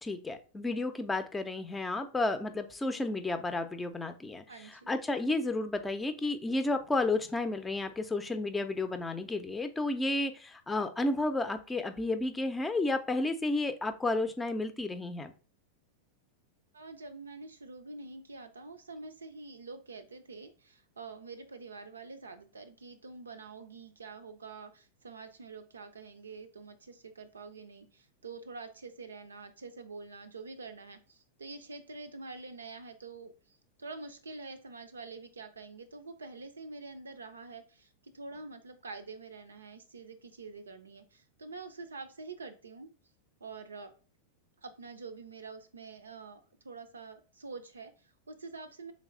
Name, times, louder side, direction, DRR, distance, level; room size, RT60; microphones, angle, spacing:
voice 1, 0.0-15.3, left 2 dB, 15° left, 9 dB, 0.5 m, -32 dB
voice 2, 4.5-4.9 16.7-42.9 43.4-43.9 44.6-48.9, right 3 dB, 85° right, 9 dB, 0.5 m, -46 dB
3.4 x 3.1 x 3.7 m, 0.37 s
hypercardioid pair, 95°, 0 cm